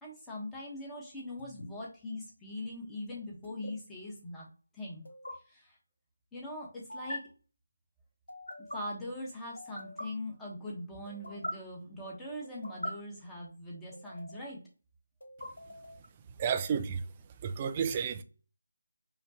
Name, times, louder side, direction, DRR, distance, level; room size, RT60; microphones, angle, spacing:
voice 1, 0.0-4.5 4.7-5.1 5.5-5.8 6.3-7.2 8.7-14.6, left 1 dB, 5° left, 1.0 m, -41 dB
sound 1, 1.4-1.7 3.4-3.7 5.0-5.3 6.9-7.2 8.3-8.8 9.6-10.1 11.1-11.5 12.4-12.9 13.9-14.5 15.2-16.1, left 1 dB, 75° left, 1.1 m, -42 dB
voice 2, 16.4-17.0 17.4-18.2, right 7 dB, 20° right, 0.4 m, -31 dB
5.1 x 2.2 x 2.8 m
figure-of-eight pair, 165°, 0 cm